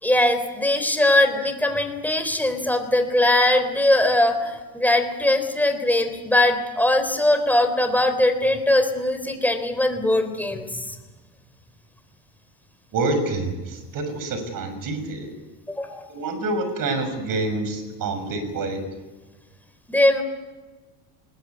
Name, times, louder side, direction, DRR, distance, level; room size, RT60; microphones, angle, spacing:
voice 1, 0.0-10.9 15.7-16.1 19.9-20.2, left 1 dB, 5° left, 7 dB, 3.7 m, -21 dB
voice 2, 12.9-15.3 16.1-18.8, right 2 dB, 50° right, 9 dB, 6.4 m, -27 dB
21.0 x 21.0 x 9.4 m, 1.3 s
supercardioid pair, 105°, 43 cm